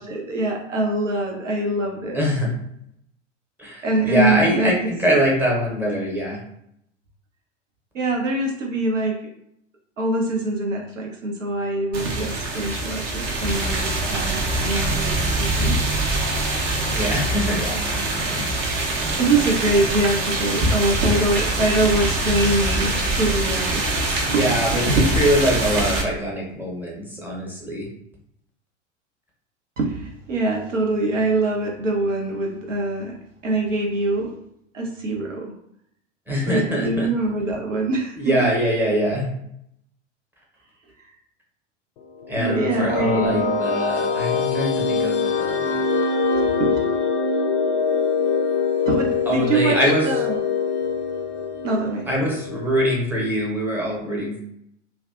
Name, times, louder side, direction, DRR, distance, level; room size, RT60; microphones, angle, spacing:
voice 1, 0.0-2.2 3.8-4.7 7.9-9.2 10.0-15.8 17.6-17.8 19.2-24.0 24.3-24.4 29.8-33.2 33.4-34.3 34.7-35.5 36.4-38.5 42.4-43.5 46.3-46.8 48.9-50.4 51.6-52.1, right 2 dB, 80° right, 0 dB, 0.7 m, -24 dB
voice 2, 2.1-2.5 3.6-6.4 16.9-17.6 18.3-18.5 24.1-27.9 36.3-37.1 38.2-39.3 42.3-45.8 49.3-50.2 52.1-54.4, equal, 5° right, -4 dB, 0.8 m, -23 dB
sound 1, 11.9-26.0, right 2 dB, 30° right, 0.6 m, -23 dB
sound 2, 42.2-53.0, left 5 dB, 45° left, 0.4 m, -24 dB
2.5 x 2.3 x 2.4 m, 0.74 s
figure-of-eight pair, 85°, 37 cm